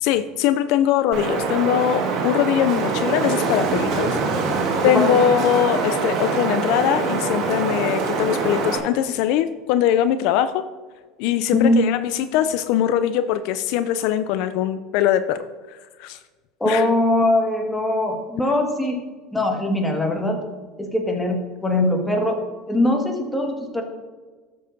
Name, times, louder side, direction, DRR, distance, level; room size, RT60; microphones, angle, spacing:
voice 1, 0.0-4.1 4.8-10.6 11.2-15.5 16.0-16.2 16.7-16.9, left 10 dB, 70° left, 11 dB, 0.3 m, -21 dB
Wind, 1.1-8.8, right 4 dB, 60° right, 1.6 m, -24 dB
voice 2, 11.5-11.9 16.6-19.0 19.3-20.4 20.8-22.4 22.7-23.8, left 1 dB, 10° left, 1 dB, 1.7 m, -21 dB
13.0 x 6.6 x 2.6 m, 1.4 s
supercardioid pair, 95°, 0 cm